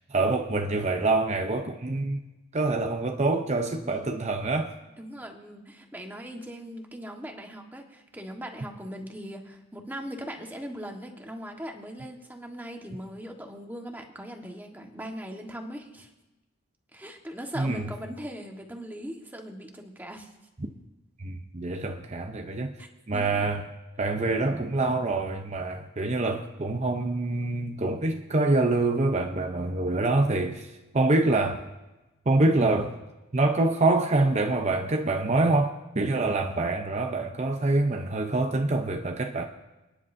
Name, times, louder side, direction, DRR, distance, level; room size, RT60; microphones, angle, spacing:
voice 1, 0.0-2.2 2.5-4.7 17.6-17.9 21.2-22.8 23.1-23.7 24.0-31.7 32.3-33.0 33.3-39.4, right 2 dB, 35° right, 0.7 m, -26 dB
voice 2, 3.8-4.2 5.0-16.1 16.9-20.3 22.8-23.4, equal, 10° right, 1.4 m, -40 dB
29.0 x 10.5 x 2.7 m
head